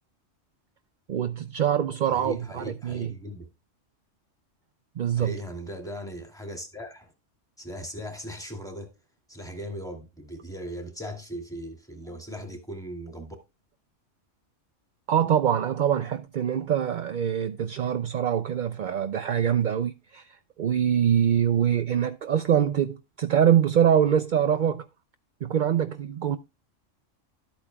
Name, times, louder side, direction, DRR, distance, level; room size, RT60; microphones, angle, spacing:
voice 1, 1.1-3.1 5.0-5.3 15.1-24.9 25.4-26.4, right 9 dB, 55° right, 0.6 m, -24 dB
voice 2, 2.1-3.5 5.1-7.1 7.6-8.9 9.3-13.4, equal, 5° left, 2.3 m, -38 dB
12.5 x 8.5 x 2.2 m
omnidirectional pair, 1.3 m